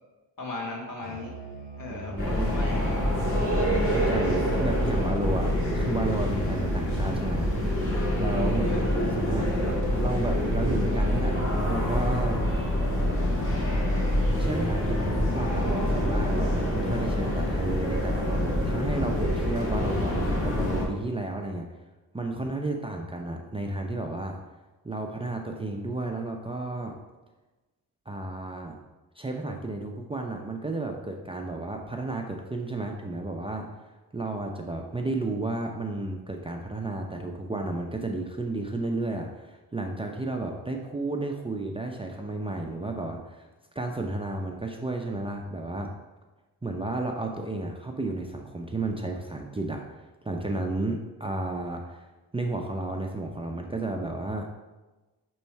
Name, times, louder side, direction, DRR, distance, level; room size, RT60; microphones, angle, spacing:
voice 1, 0.4-1.3 1.8-3.0 8.6-8.8, left 2 dB, 55° left, -2 dB, 1.9 m, -37 dB
Musical instrument, 1.0-8.0, right 3 dB, 90° left, 1.3 m, -42 dB
voice 2, 1.5-2.5 3.8-7.5 8.2-12.4 14.4-21.7 22.1-24.4 24.8-27.0 28.1-28.8 29.2-33.7 34.1-43.5 43.7-45.9 46.6-54.5, right 2 dB, 15° right, 1 dB, 0.5 m, -32 dB
sound 1, 2.2-20.8, left 1 dB, 30° left, 2.0 m, -26 dB
6.7 x 3.1 x 4.5 m, 1.2 s
cardioid pair, 75°, 40 cm